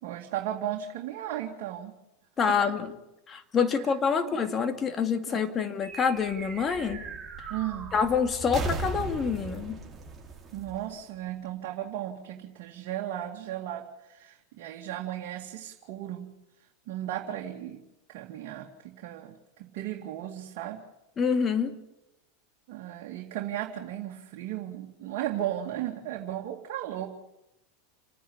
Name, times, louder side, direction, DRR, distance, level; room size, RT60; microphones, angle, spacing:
voice 1, 0.0-1.9 2.5-2.6 4.2-4.4 5.3-5.4 7.5-7.9 10.5-16.3 16.9-17.8 18.1-20.8 22.7-27.1, right 12 dB, 60° right, 0 dB, 2.2 m, -35 dB
voice 2, 2.4-2.9 3.3-7.0 7.9-9.8 21.2-21.8, left 6 dB, 30° left, 8 dB, 2.4 m, -27 dB
sound 1, 5.8-11.5, right 4 dB, 15° right, 4.6 m, -38 dB
29.0 x 10.0 x 9.7 m, 0.91 s
hypercardioid pair, 100°, 0 cm